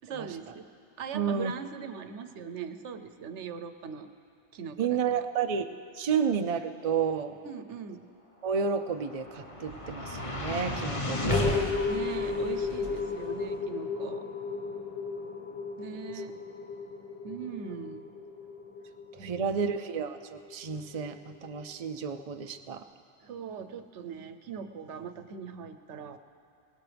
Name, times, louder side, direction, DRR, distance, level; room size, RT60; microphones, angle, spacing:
voice 1, 0.0-0.7 1.0-4.1 4.5-5.3 7.4-8.0 11.9-14.2 15.8-16.4 17.2-18.0 19.2-19.6 23.2-26.2, right 7 dB, 85° right, 9 dB, 1.0 m, -40 dB
voice 2, 1.1-1.5 4.8-7.4 8.4-11.7 19.1-22.8, right 6 dB, 40° right, 7 dB, 0.6 m, -31 dB
sound 1, 8.7-21.1, left 3 dB, 30° left, 1.2 m, -33 dB
22.0 x 19.0 x 3.4 m, 2.4 s
omnidirectional pair, 1.2 m